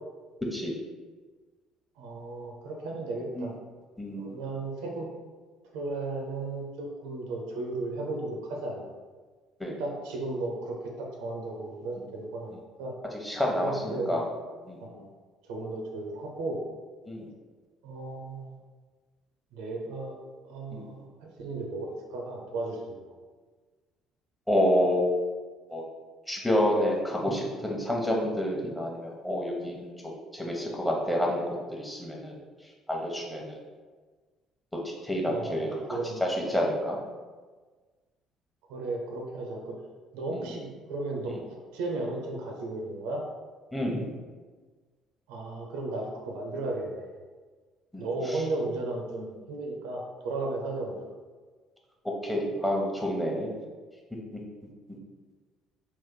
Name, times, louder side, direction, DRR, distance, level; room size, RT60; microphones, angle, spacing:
voice 1, 2.0-3.5 4.1-5.1 5.7-8.8 9.8-12.9 13.6-14.2 14.8-15.1 15.5-16.6 17.8-18.6 19.5-20.1 20.4-23.0 35.3-36.3 38.7-39.7 40.1-43.2 45.3-47.1 48.0-51.1, right 2 dB, 70° right, 0 dB, 0.5 m, -35 dB
voice 2, 4.0-4.3 9.6-9.8 13.1-14.2 14.7-14.8 17.1-17.3 20.7-20.9 24.5-25.1 25.7-25.8 26.3-29.8 30.3-32.3 32.9-33.6 34.8-37.0 40.3-40.4 43.7-44.0 47.9-48.4 52.2-53.5, equal, 10° left, -1 dB, 0.9 m, -28 dB
3.6 x 2.5 x 3.7 m, 1.4 s
figure-of-eight pair, 50°, 0 cm